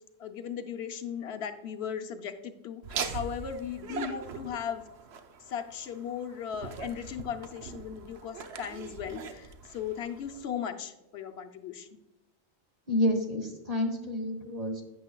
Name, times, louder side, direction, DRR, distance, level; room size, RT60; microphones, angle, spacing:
voice 1, 0.2-4.9 5.4-12.0, left 8 dB, 75° left, 6 dB, 0.9 m, -37 dB
Laughter, 2.8-10.5, right 6 dB, 75° right, 1.0 m, -41 dB
voice 2, 12.9-14.8, left 1 dB, 35° right, 3 dB, 1.3 m, -29 dB
11.5 x 8.0 x 2.2 m, 0.95 s
omnidirectional pair, 1.1 m